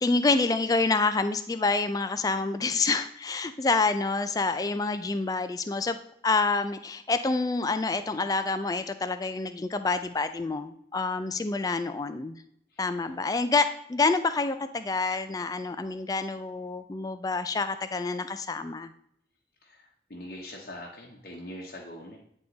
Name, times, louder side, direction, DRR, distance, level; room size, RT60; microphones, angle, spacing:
voice 1, 0.0-6.0 6.2-12.4 12.8-18.9, left 3 dB, 20° left, 10 dB, 0.3 m, -27 dB
voice 2, 12.7-13.1 19.6-22.2, left 1 dB, 55° left, -2 dB, 0.9 m, -43 dB
9.3 x 3.6 x 3.9 m, 0.71 s
head